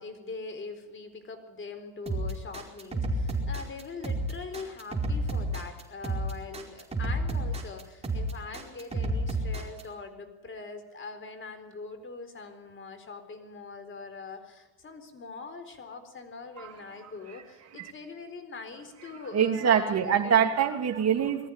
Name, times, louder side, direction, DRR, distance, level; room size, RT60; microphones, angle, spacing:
voice 1, 0.0-20.5, left 4 dB, 30° left, 9 dB, 4.2 m, -42 dB
sound 1, 2.1-9.8, right 1 dB, 15° right, 4.8 m, -30 dB
voice 2, 19.3-21.5, right 8 dB, 40° right, 5 dB, 3.0 m, -25 dB
21.5 x 14.0 x 10.0 m, 1.1 s
supercardioid pair, 95°, 39 cm